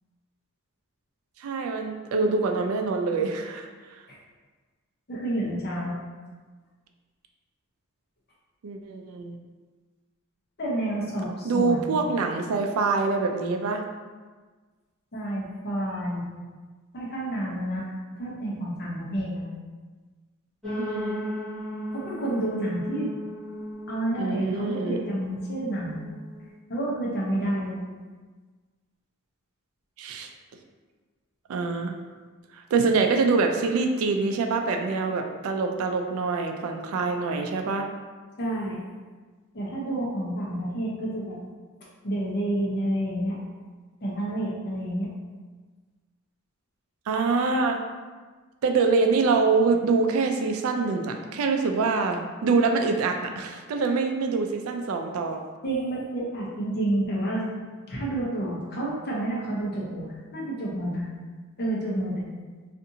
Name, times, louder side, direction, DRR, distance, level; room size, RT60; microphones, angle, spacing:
voice 1, 1.4-4.0 8.6-9.4 11.4-13.8 20.8-21.2 24.2-25.0 30.0-30.3 31.5-32.0 32.5-37.9 47.1-47.8 48.6-55.4, right 4 dB, 70° right, 4 dB, 0.3 m, -25 dB
voice 2, 5.1-6.0 10.6-12.0 15.1-16.2 16.9-17.8 18.2-19.5 21.9-23.1 23.9-26.0 26.7-27.8 38.4-38.8 39.5-41.4 42.0-43.4 44.0-45.1 55.6-57.4 57.9-61.0 61.6-62.2, right 1 dB, 50° left, -5 dB, 0.7 m, -29 dB
sound 1, 20.6-26.5, left 1 dB, ahead, 0.9 m, -36 dB
2.6 x 2.5 x 2.6 m, 1.4 s
head